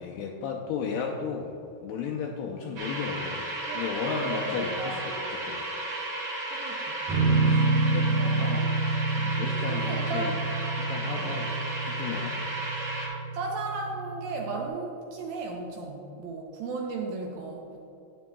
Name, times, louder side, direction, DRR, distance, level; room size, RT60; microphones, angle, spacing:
voice 1, 0.0-3.4 3.7-5.0 5.3-5.6 7.5-7.6 7.9-8.1 8.4-8.6 9.2-10.4 10.8-11.5 11.8-12.4, left 6 dB, 80° left, 0 dB, 2.5 m, -34 dB
sound 1, 2.8-13.1, right 2 dB, 45° right, 2.3 m, -34 dB
voice 2, 3.7-5.0 6.5-7.0 8.1-8.8 9.7-10.4 11.1-11.4 13.3-17.9, right 3 dB, 75° right, 0 dB, 2.3 m, -35 dB
sound 2, 7.1-14.7, right 3 dB, 60° right, 2.3 m, -28 dB
11.0 x 9.4 x 2.3 m, 2.7 s
omnidirectional pair, 4.9 m